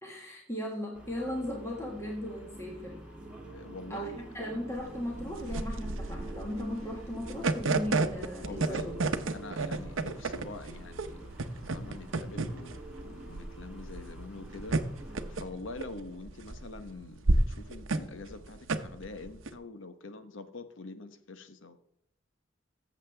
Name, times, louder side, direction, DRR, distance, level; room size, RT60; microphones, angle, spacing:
voice 1, 0.0-3.0 3.9-9.0, left 1 dB, 15° left, 1.6 m, -37 dB
sound 1, 0.9-15.4, right 1 dB, 5° right, 2.5 m, -47 dB
voice 2, 3.5-4.2 8.4-8.9 9.3-21.8, left 3 dB, 80° left, 0.9 m, -45 dB
sound 2, 4.8-19.5, right 2 dB, 85° right, 0.8 m, -32 dB
14.5 x 7.3 x 3.4 m
head